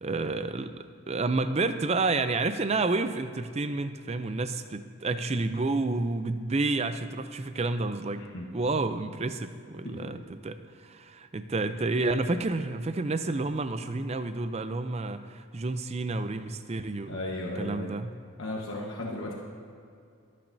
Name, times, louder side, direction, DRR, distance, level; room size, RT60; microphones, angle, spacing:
voice 1, 0.0-8.2 8.5-10.6 10.8-17.2 17.6-18.1, right 3 dB, 30° right, 10 dB, 0.5 m, -30 dB
voice 2, 17.0-17.9 18.4-19.3, left 1 dB, 60° left, -3 dB, 1.3 m, -35 dB
24.0 x 8.8 x 2.7 m, 2.4 s
head